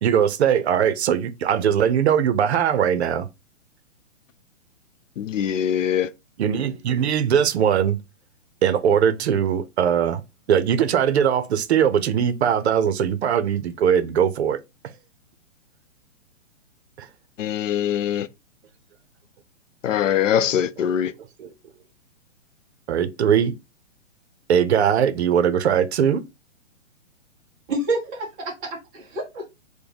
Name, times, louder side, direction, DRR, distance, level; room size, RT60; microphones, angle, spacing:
voice 1, 0.0-3.3 6.4-8.0 8.6-10.2 10.5-14.6 17.0-17.1 21.4-21.5 22.9-23.5 24.5-26.2, right 8 dB, 55° right, 0.6 m, -20 dB
voice 2, 5.2-6.1 17.4-18.3 19.8-21.1, left 9 dB, 75° left, 0.5 m, -22 dB
voice 3, 27.7-29.5, right 2 dB, 10° right, 0.4 m, -28 dB
4.7 x 2.2 x 3.3 m
hypercardioid pair, 135°, 38 cm